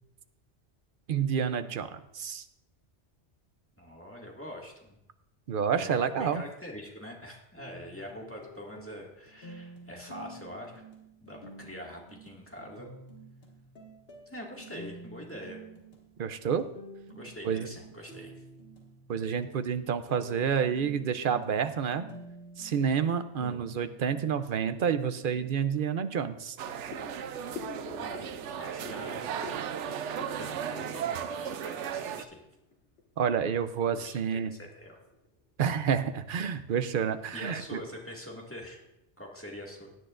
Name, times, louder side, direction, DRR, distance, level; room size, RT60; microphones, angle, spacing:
voice 1, 1.1-2.4 5.5-6.4 16.2-16.6 17.4-17.7 19.1-22.0 22.6-26.6 33.2-34.5 35.6-37.8, right 7 dB, 55° right, 11 dB, 0.7 m, -29 dB
voice 2, 3.8-5.0 5.7-10.8 11.2-12.9 14.3-15.6 17.1-18.3 23.4-23.7 27.9-29.3 29.9-32.4 33.9-35.0 37.3-38.8 39.2-39.9, equal, 10° left, -2 dB, 1.9 m, -44 dB
sound 1, 7.6-25.5, right 2 dB, 60° left, 1.9 m, -50 dB
sound 2, 25.2-25.3 25.6-25.8 26.2-32.7 33.0-33.6 34.0-34.2 34.5-34.6 35.1-35.3 35.6-35.8 36.3-36.7 37.3-37.5 37.8-38.5 38.8-38.9, left 4 dB, 85° left, 1.9 m, -47 dB
sound 3, 26.6-32.2, right 9 dB, 85° right, 0.9 m, -36 dB
17.0 x 10.0 x 2.5 m, 0.86 s
omnidirectional pair, 1.2 m